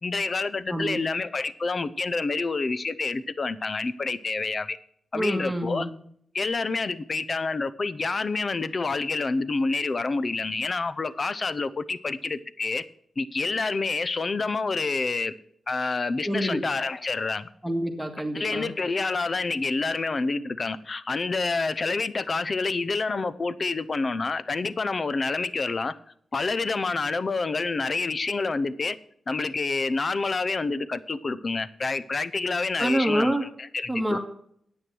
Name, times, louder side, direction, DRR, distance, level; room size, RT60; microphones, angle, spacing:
voice 1, 0.0-4.8 5.1-5.9 6.3-12.8 13.2-15.3 15.7-17.5 18.3-25.9 26.3-29.0 29.3-34.2, left 3 dB, 40° left, 0.7 m, -28 dB
voice 2, 0.7-1.0 5.1-5.9 16.2-16.6 17.6-18.7 32.8-33.5 33.9-34.2, right 1 dB, 5° right, 1.7 m, -27 dB
9.7 x 8.9 x 6.1 m
wide cardioid pair, 105°, 0 cm